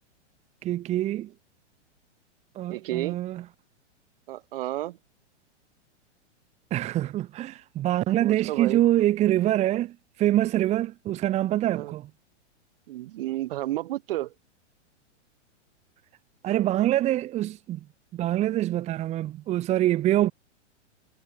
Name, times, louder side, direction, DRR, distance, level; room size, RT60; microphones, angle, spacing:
voice 1, 0.6-1.3 2.6-3.5 6.7-12.1 16.4-17.8 18.1-20.3, right 13 dB, 20° right, 1.8 m, -25 dB
voice 2, 2.7-3.2 4.3-5.0 8.2-8.8 11.7-11.9 12.9-14.3, right 15 dB, 50° right, 7.6 m, -31 dB
hypercardioid pair, 165°, 36 cm